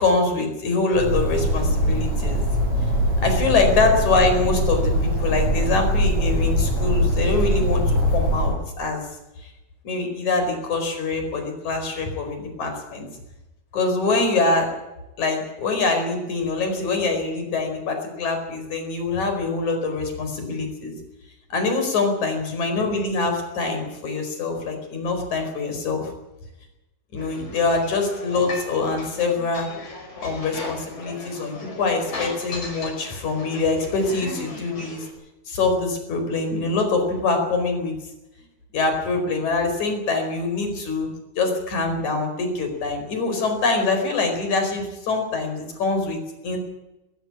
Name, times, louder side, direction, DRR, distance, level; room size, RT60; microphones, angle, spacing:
voice 1, 0.0-2.4 3.2-9.1 9.4-9.5 9.8-13.1 13.7-14.7 15.2-20.9 21.5-26.1 27.1-29.7 30.2-35.1 35.5-38.0 38.7-46.6, left 3 dB, 70° left, 5 dB, 6.0 m, -24 dB
Bird, 0.9-8.5, equal, 55° right, 9.2 m, -22 dB
sound 1, 27.2-35.1, left 2 dB, 50° left, 6.2 m, -37 dB
21.0 x 15.0 x 8.8 m, 0.97 s
omnidirectional pair, 3.5 m